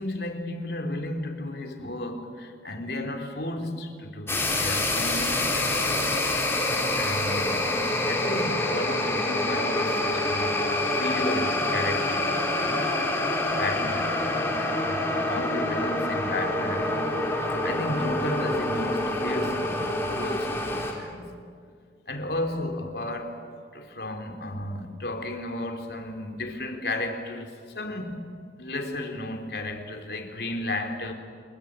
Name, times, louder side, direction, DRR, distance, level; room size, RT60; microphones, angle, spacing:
voice 1, 0.0-6.3 7.0-10.6 10.9-12.9 13.3-16.9 17.6-21.3 22.1-23.4 23.7-28.2 28.6-31.1, left 1 dB, 65° left, 3.4 m, -33 dB
sound 1, 4.3-20.9, left 2 dB, 15° left, 3.9 m, -26 dB
27.5 x 22.5 x 8.9 m
head